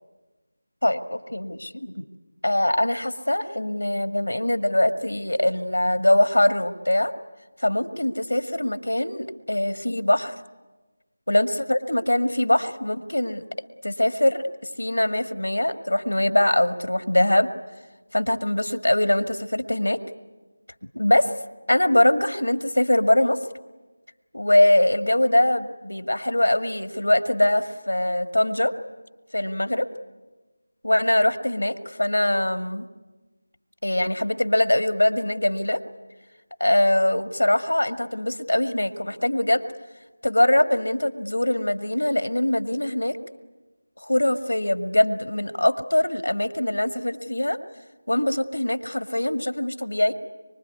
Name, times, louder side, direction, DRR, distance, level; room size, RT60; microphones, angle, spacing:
voice 1, 0.8-2.1 2.4-7.1 7.6-10.4 11.3-13.4 13.8-17.5 18.1-20.0 21.0-21.3 21.7-23.4 24.3-28.7 29.3-29.8 30.8-32.9 33.8-35.8 36.6-39.7 40.2-43.2 44.0-47.6 48.1-50.1, left 1 dB, 75° left, 9 dB, 1.8 m, -22 dB
25.0 x 24.0 x 9.6 m, 1.2 s
figure-of-eight pair, 165°, 0 cm